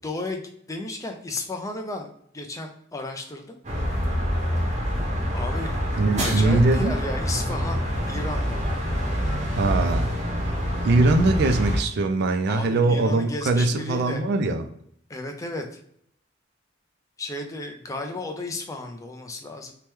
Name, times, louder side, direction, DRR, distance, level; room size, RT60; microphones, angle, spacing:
voice 1, 0.0-0.4 0.7-3.6 5.3-5.8 6.2-8.6 12.5-14.2 15.1-15.8 17.2-19.7, left 2 dB, 15° left, 0.4 m, -33 dB
sound 1, 3.6-11.8, equal, 35° right, 0.7 m, -26 dB
voice 2, 6.0-6.9 9.6-10.1 10.8-14.6, right 2 dB, 55° right, 0.3 m, -21 dB
2.9 x 2.2 x 3.2 m
head